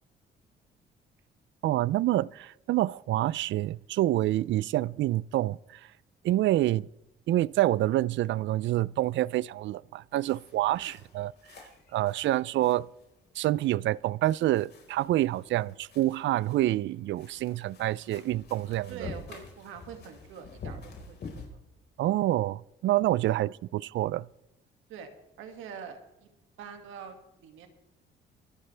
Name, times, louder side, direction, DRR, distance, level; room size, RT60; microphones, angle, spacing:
voice 1, 1.6-5.6 6.2-6.9 7.3-11.3 11.9-12.9 13.4-19.1 22.0-24.3, right 15 dB, 70° right, 0.4 m, -27 dB
sound 1, 10.3-21.5, left 4 dB, 55° left, 4.5 m, -48 dB
voice 2, 18.9-21.5 24.9-25.1 25.4-26.3 26.6-27.7, right 7 dB, 90° right, 2.1 m, -45 dB
24.0 x 11.0 x 3.3 m
cardioid pair, 90°, 20 cm